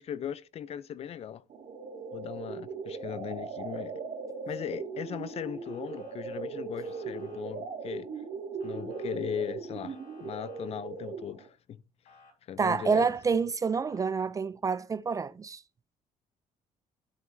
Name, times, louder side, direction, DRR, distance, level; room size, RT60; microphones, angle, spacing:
voice 1, 0.0-1.4 2.1-3.9 4.5-8.1 8.6-11.8 12.5-13.1, left 9 dB, 45° left, 0.6 m, -38 dB
sound 1, 1.5-11.5, right 5 dB, 65° right, 2.3 m, -39 dB
Motor vehicle (road) / Siren, 5.6-6.1 6.8-7.4 8.6-9.1 9.8-10.7 12.0-12.3 13.8-14.1, left 4 dB, 85° left, 4.4 m, -57 dB
voice 2, 12.6-15.6, right 5 dB, 25° right, 0.4 m, -28 dB
12.5 x 7.7 x 2.7 m
cardioid pair, 155°, 14 cm